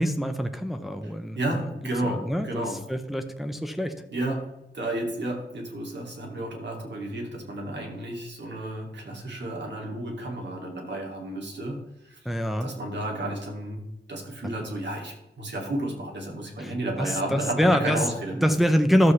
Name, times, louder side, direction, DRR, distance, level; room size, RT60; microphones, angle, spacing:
voice 1, 0.0-1.4 2.0-4.0 12.2-12.7 16.6-16.7 17.0-18.0 18.4-19.1, equal, ahead, 7 dB, 0.7 m, -24 dB
voice 2, 1.0-2.8 4.0-4.5 4.7-12.3 12.6-18.5, right 1 dB, 65° right, 0 dB, 2.5 m, -32 dB
12.0 x 7.5 x 3.2 m, 0.93 s
wide cardioid pair, 110°, 19 cm